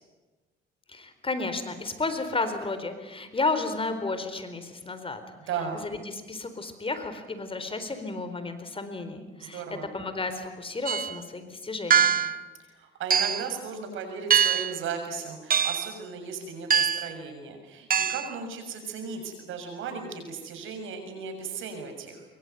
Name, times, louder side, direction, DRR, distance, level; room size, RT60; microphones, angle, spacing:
voice 1, 0.9-5.2 5.7-12.2, left 3 dB, 25° left, 9 dB, 4.2 m, -32 dB
voice 2, 5.5-5.8 9.4-9.9 12.6-22.3, right 5 dB, 85° right, 5 dB, 6.9 m, -36 dB
sound 1, 10.9-11.2 11.9-12.4 13.1-13.5 14.3-14.8 15.5-15.9 16.7-17.1 17.9-18.3, right 7 dB, 45° right, 1.1 m, -23 dB
25.0 x 23.0 x 9.4 m, 1.2 s
cardioid pair, 90°, 20 cm